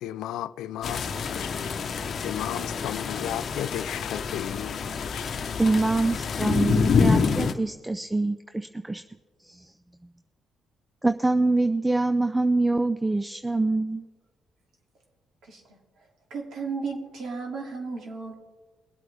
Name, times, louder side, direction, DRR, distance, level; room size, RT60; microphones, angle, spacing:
voice 1, 0.0-1.6 2.2-4.8 5.1-5.3, left 12 dB, 90° left, 0.4 m, -34 dB
sound 1, 0.8-7.5, left 5 dB, 55° left, 0.9 m, -27 dB
voice 2, 5.6-9.0 11.0-14.0, right 2 dB, 10° right, 0.4 m, -24 dB
voice 3, 15.4-18.4, right 4 dB, 70° right, 2.7 m, -35 dB
21.5 x 8.3 x 3.4 m
cardioid pair, 90°, 0 cm